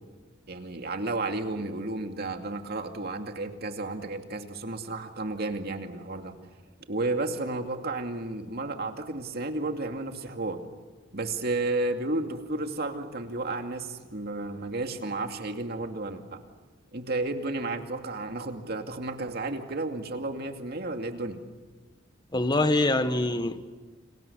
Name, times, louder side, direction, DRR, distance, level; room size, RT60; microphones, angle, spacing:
voice 1, 0.5-6.3 6.9-10.6 11.1-16.4 16.9-21.4, right 2 dB, 50° right, 2.4 m, -32 dB
voice 2, 22.3-23.6, left 2 dB, 20° left, 1.1 m, -24 dB
30.0 x 27.5 x 7.1 m
head